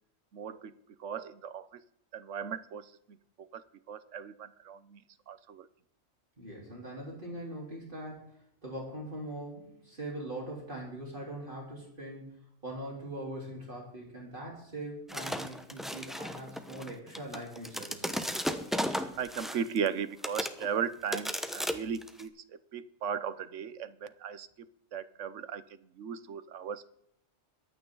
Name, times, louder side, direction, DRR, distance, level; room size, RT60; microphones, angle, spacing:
voice 1, 0.3-0.7 1.0-1.8 2.1-5.7 19.2-26.9, right 7 dB, 85° right, 14 dB, 1.2 m, -37 dB
voice 2, 6.4-8.3 8.6-12.2 12.6-18.3, right 1 dB, 45° right, -3 dB, 4.0 m, -41 dB
sound 1, 15.1-19.9 20.2-20.7 21.1-22.2, equal, ahead, 0.9 m, -34 dB
23.0 x 9.2 x 3.9 m, 0.72 s
omnidirectional pair, 1.2 m